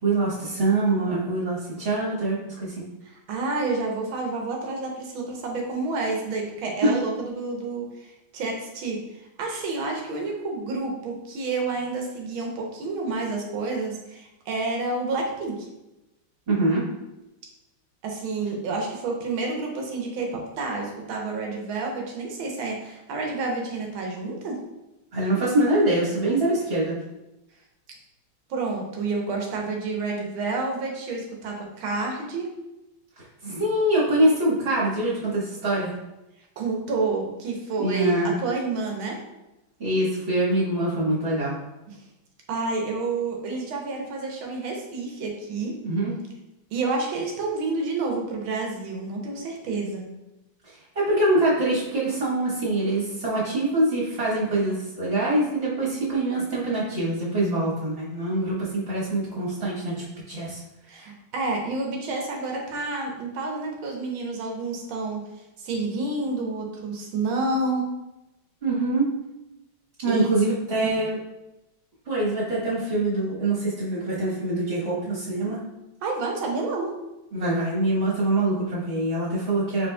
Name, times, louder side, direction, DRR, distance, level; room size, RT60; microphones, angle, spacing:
voice 1, 0.0-2.8 6.8-6.9 16.5-16.8 25.1-27.0 33.4-35.9 37.8-38.3 39.8-41.5 45.8-46.1 50.6-60.6 68.6-69.1 70.0-71.2 72.1-75.6 77.3-79.9, right 1 dB, 40° right, -8 dB, 1.3 m, -24 dB
voice 2, 3.0-9.0 9.4-15.6 18.0-24.6 28.5-32.5 36.6-39.2 41.9-42.0 42.5-45.7 46.7-50.0 60.9-65.2 65.6-67.9 70.1-70.5 70.9-71.0 76.0-76.9, right 3 dB, 85° right, 0 dB, 1.6 m, -29 dB
5.0 x 3.9 x 2.3 m, 0.95 s
omnidirectional pair, 2.2 m